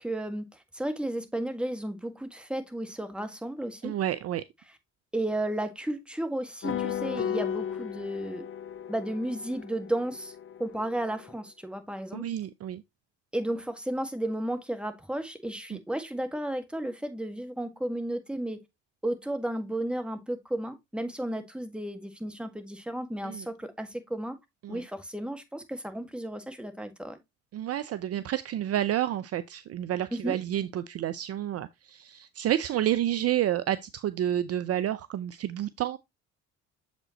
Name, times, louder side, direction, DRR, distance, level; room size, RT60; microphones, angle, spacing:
voice 1, 0.0-3.9 5.1-8.4 8.9-12.3 13.3-18.6 19.0-24.3 24.7-27.2 30.1-30.4, right 1 dB, 5° right, 1.7 m, -33 dB
voice 2, 3.8-4.5 12.1-12.8 15.7-15.8 23.2-23.5 24.6-24.8 27.5-36.0, right 12 dB, 45° right, 0.5 m, -30 dB
sound 1, 6.6-11.3, left 9 dB, 40° left, 0.8 m, -35 dB
7.4 x 5.2 x 2.9 m
hypercardioid pair, 65°, 34 cm